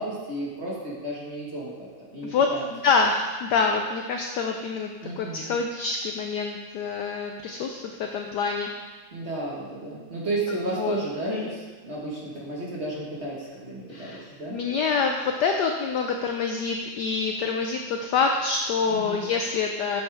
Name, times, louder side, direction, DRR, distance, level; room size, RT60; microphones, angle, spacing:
voice 1, 0.0-2.7 5.0-5.5 9.1-14.6 18.8-19.2, right 2 dB, 35° right, -5 dB, 1.5 m, -33 dB
voice 2, 2.2-4.9 5.2-8.7 10.8-11.0 11.3-11.5 13.9-20.0, left 5 dB, 80° left, 3 dB, 0.9 m, -26 dB
8.3 x 7.1 x 3.4 m, 1.3 s
omnidirectional pair, 2.4 m